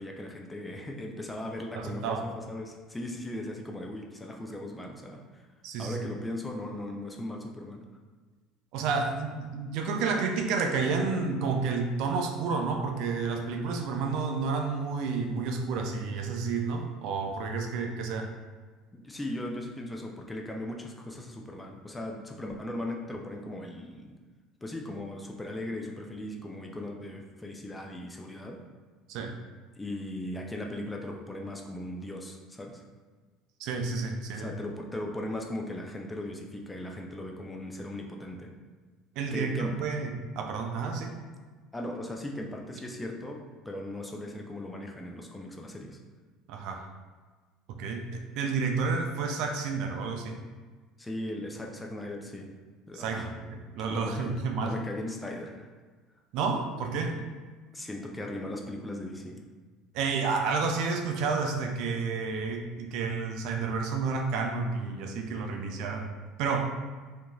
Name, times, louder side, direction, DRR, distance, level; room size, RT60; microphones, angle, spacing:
voice 1, 0.0-5.5 5.8-7.8 18.9-24.2 24.6-28.6 29.8-32.8 34.3-38.5 39.3-39.8 41.7-46.0 51.0-52.5 52.9-53.3 53.9-55.7 57.1-57.2 57.7-59.4, left 1 dB, 10° left, 1 dB, 0.3 m, -38 dB
voice 2, 1.7-2.2 5.6-5.9 8.7-18.3 29.1-29.3 33.6-34.5 39.2-41.1 46.5-46.9 47.8-50.4 52.9-54.7 56.3-57.2 59.9-66.1 66.4-66.6, right 4 dB, 70° right, 4 dB, 0.3 m, -30 dB
2.9 x 2.5 x 2.2 m, 1.4 s
supercardioid pair, 110°, 0 cm